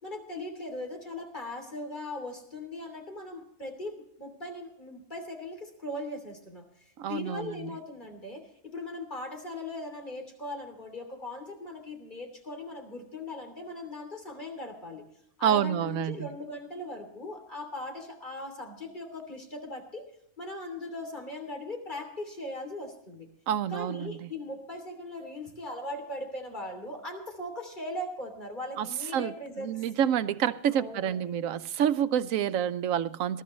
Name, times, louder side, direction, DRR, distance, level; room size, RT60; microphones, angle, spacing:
voice 1, 0.0-15.0 15.4-20.0 20.4-23.3 23.7-29.8 30.7-31.4, left 1 dB, 35° left, 3.2 m, -39 dB
voice 2, 7.0-7.5 15.4-16.3 23.5-24.2 28.8-28.9 29.1-29.3 29.6-33.4, right 9 dB, 90° right, 1.1 m, -28 dB
20.5 x 12.5 x 3.2 m
omnidirectional pair, 1.3 m